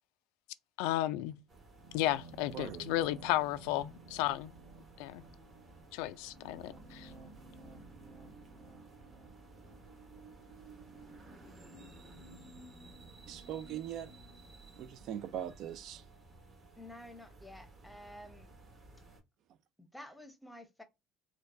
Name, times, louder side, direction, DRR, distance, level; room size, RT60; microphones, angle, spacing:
voice 1, 0.8-1.4 1.9-4.5 5.0-5.2 5.9-7.1, left 14 dB, 85° left, 0.3 m, -33 dB
sound 1, 1.5-19.2, right 2 dB, 35° right, 1.0 m, -55 dB
sound 2, 1.8-10.7, right 3 dB, 75° right, 1.8 m, -55 dB
voice 2, 2.5-2.9 13.3-14.1 14.8-16.0, right 10 dB, 55° right, 0.4 m, -41 dB
voice 3, 16.8-18.5 19.8-20.8, left 1 dB, 5° left, 0.7 m, -51 dB
4.4 x 2.2 x 2.6 m
cardioid pair, 125°, 0 cm